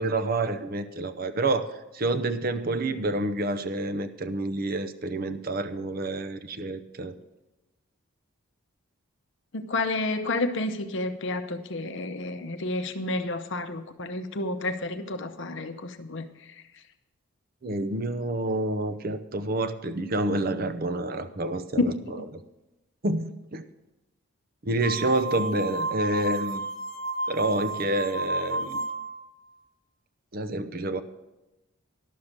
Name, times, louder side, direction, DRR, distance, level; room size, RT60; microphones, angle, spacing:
voice 1, 0.0-7.1 17.6-21.9 22.3-22.4 23.0-23.6 24.6-26.6 27.3-28.8 30.3-31.0, right 2 dB, 40° right, 12 dB, 0.6 m, -28 dB
voice 2, 9.5-16.5 21.8-22.3, left 2 dB, 55° left, 7 dB, 0.7 m, -30 dB
sound 1, 24.8-29.2, right 2 dB, 20° left, 0.8 m, -31 dB
11.5 x 6.6 x 7.3 m, 1.0 s
head